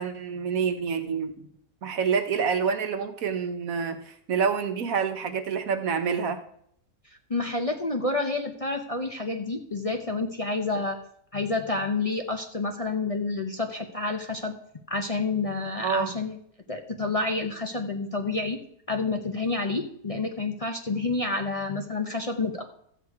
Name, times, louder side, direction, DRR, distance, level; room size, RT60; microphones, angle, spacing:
voice 1, 0.0-1.5 1.8-6.4 15.8-16.1, right 6 dB, 70° right, 7 dB, 1.4 m, -27 dB
voice 2, 7.3-11.0 11.3-14.5 14.9-16.4 16.7-18.6 18.9-22.6, left 3 dB, 30° left, 2 dB, 0.7 m, -29 dB
13.0 x 8.1 x 4.8 m, 0.68 s
omnidirectional pair, 1.5 m